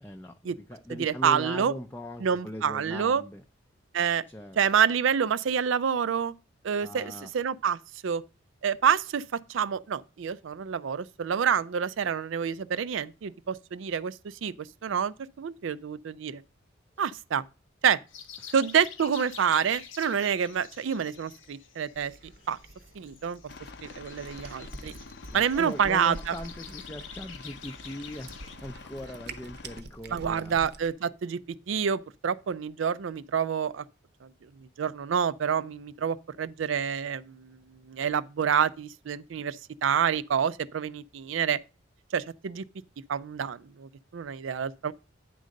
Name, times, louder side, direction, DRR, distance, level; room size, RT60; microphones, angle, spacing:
voice 1, 0.0-3.4 4.3-4.6 6.8-7.3 18.4-18.5 25.3-30.6, left 1 dB, 10° left, 0.4 m, -40 dB
voice 2, 1.0-1.7 2.2-3.2 3.9-4.2 4.6-6.3 6.6-8.2 8.6-16.4 17.0-17.4 17.8-18.0 18.5-22.6 23.0-23.4 23.8-24.9 25.3-26.3 30.1-31.4 31.7-33.8 34.8-37.6 37.9-41.6 42.1-42.6 43.1-44.9, right 7 dB, 80° right, 0.4 m, -28 dB
sound 1, 18.1-28.6, left 7 dB, 90° left, 1.1 m, -48 dB
Cat, 21.9-30.9, right 2 dB, 55° right, 0.8 m, -47 dB
Aircraft, 23.5-29.8, left 4 dB, 60° left, 0.6 m, -47 dB
9.3 x 3.9 x 6.3 m
head